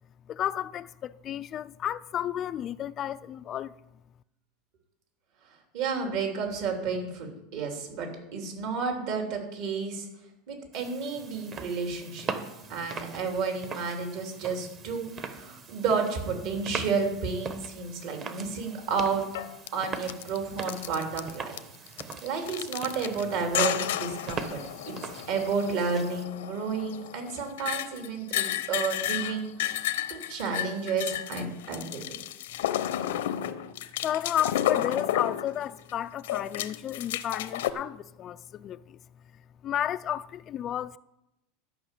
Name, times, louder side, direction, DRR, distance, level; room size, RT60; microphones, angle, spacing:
voice 1, 0.3-3.7 34.0-39.0 39.6-41.0, left 11 dB, 35° left, 0.3 m, -32 dB
voice 2, 5.7-10.1 10.5-12.3 12.7-19.3 19.7-21.6 21.9-24.6 24.9-32.2, right 5 dB, 60° right, 3.2 m, -31 dB
sound 1, 10.7-26.2, right 5 dB, 35° right, 1.1 m, -41 dB
sound 2, 18.9-19.0 19.3-19.7 20.0-20.4 20.6-21.6 21.9-23.3 23.5-35.9 36.2-37.7, left 12 dB, 85° left, 0.8 m, -32 dB
12.5 x 5.7 x 8.3 m
supercardioid pair, 140°, 0 cm